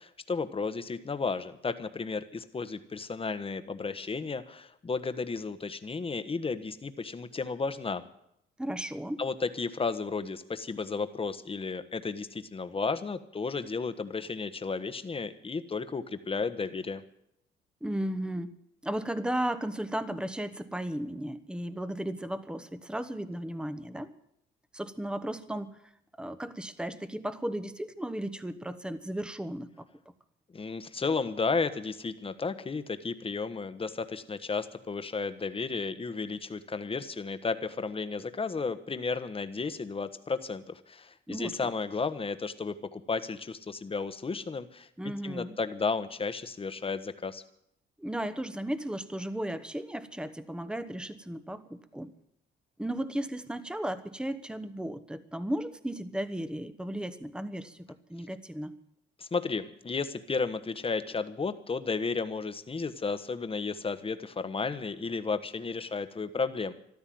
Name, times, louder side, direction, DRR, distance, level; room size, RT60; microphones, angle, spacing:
voice 1, 0.0-8.0 9.2-17.0 30.5-47.4 59.2-66.7, left 4 dB, 30° left, 10 dB, 1.2 m, -33 dB
voice 2, 8.6-9.2 17.8-18.5 18.8-24.1 24.7-25.8 26.2-29.8 41.3-41.7 45.0-45.6 48.0-52.1 52.8-58.8, right 1 dB, 5° right, 12 dB, 1.1 m, -35 dB
14.5 x 12.5 x 7.7 m, 0.75 s
cardioid pair, 90°, 20 cm